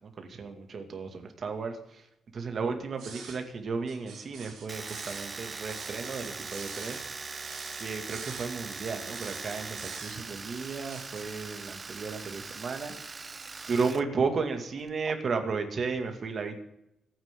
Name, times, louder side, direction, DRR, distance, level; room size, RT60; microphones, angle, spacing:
voice 1, 0.0-2.0 2.3-7.0 7.8-12.9 13.7-16.6, right 4 dB, 50° right, 6 dB, 2.2 m, -34 dB
sound 1, 3.0-3.4 3.9-5.3 5.7-7.1 7.4-8.5 9.1-10.4 10.8-11.2, right 5 dB, 75° right, 4.2 m, -45 dB
Domestic sounds home sounds, 4.7-14.0 14.3-15.1, right 4 dB, 35° right, 0.4 m, -41 dB
26.0 x 9.5 x 3.8 m, 0.84 s
cardioid pair, 95°, 0 cm